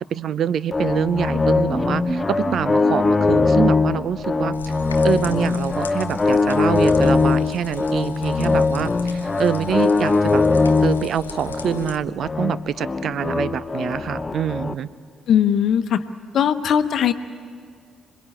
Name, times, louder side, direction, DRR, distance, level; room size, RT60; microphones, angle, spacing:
voice 1, 0.1-4.5 5.0-10.4 10.8-14.9, right 8 dB, 55° right, 19 dB, 0.6 m, -25 dB
sound 1, 0.7-14.7, left 3 dB, 25° left, 0.8 m, -21 dB
sound 2, 1.7-5.6 5.8-5.9 6.2-6.3, right 3 dB, 25° right, 1.5 m, -34 dB
sound 3, 4.5-12.0, left 5 dB, 90° left, 0.6 m, -39 dB
voice 2, 15.3-16.0 16.3-17.1, left 9 dB, 55° left, 11 dB, 0.9 m, -19 dB
26.0 x 21.5 x 8.9 m, 2.1 s
figure-of-eight pair, 40°, 0 cm